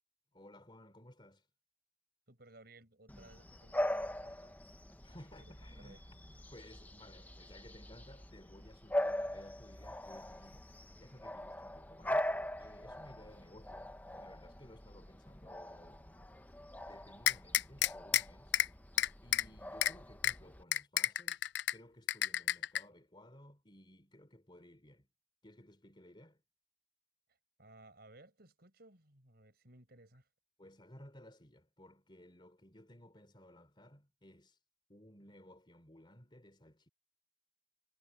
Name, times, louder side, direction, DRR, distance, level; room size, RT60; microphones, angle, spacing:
voice 1, 0.3-1.5 5.0-12.3 12.6-16.4 16.8-18.6 19.2-25.1 25.4-26.4 30.6-34.6 34.9-36.9, left 1 dB, 25° left, 3.8 m, -58 dB
voice 2, 2.3-4.6 5.1-5.5 5.8-6.0 27.6-30.3, right 2 dB, 55° right, 5.7 m, -60 dB
Bark / Bird vocalization bird call bird song, 3.1-20.6, left 1 dB, 10° left, 1.0 m, -42 dB
sound 1, 17.3-18.2 18.5-18.7 19.0-19.4 19.8-19.9 20.2-20.3 20.7-21.7 22.1-22.8, left 12 dB, 65° left, 0.4 m, -29 dB
head